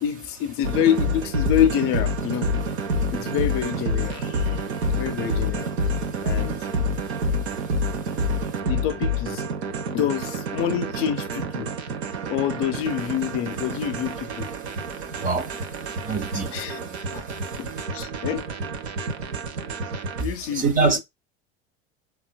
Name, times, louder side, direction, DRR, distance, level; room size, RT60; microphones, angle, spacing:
voice 1, 0.0-2.5 3.1-5.7 6.2-6.6 8.6-9.4 9.9-11.7 12.3-14.5 16.5-16.8 17.1-17.2 17.6-18.5 20.2-21.0, left 10 dB, 45° left, 0.5 m, -27 dB
sound 1, 0.6-20.2, equal, 90° right, 0.6 m, -28 dB
voice 2, 15.1-15.5 16.0-16.5 16.8-17.4 20.5-21.0, right 4 dB, 25° right, 0.4 m, -25 dB
4.3 x 2.2 x 2.2 m
hypercardioid pair, 85°, 32 cm